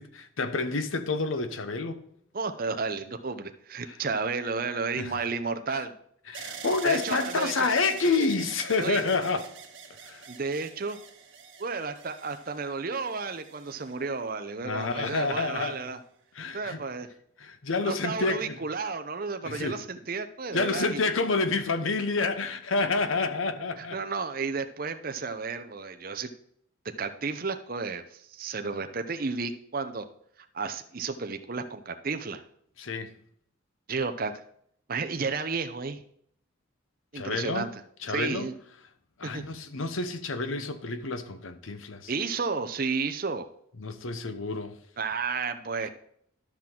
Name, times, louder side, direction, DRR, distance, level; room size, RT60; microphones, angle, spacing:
voice 1, 0.0-2.0 5.0-5.2 6.3-9.5 10.0-10.2 14.6-15.9 16.3-16.8 17.4-18.6 19.4-19.8 20.5-24.0 32.8-33.1 37.1-37.7 38.0-38.5 39.2-42.1 43.8-44.7, left 3 dB, 75° left, 0.9 m, -28 dB
voice 2, 2.3-5.9 6.8-7.7 8.8-9.0 10.3-11.0 11.6-16.0 16.5-17.1 17.8-21.0 23.8-26.3 27.0-30.0 30.5-32.4 33.9-34.4 34.9-36.0 37.1-37.8 38.1-38.5 39.3-39.4 42.1-43.5 45.0-45.9, right 4 dB, 45° right, 0.6 m, -32 dB
sound 1, 6.3-14.4 15.1-15.7, right 6 dB, 70° right, 1.7 m, -45 dB
12.5 x 6.0 x 3.7 m
head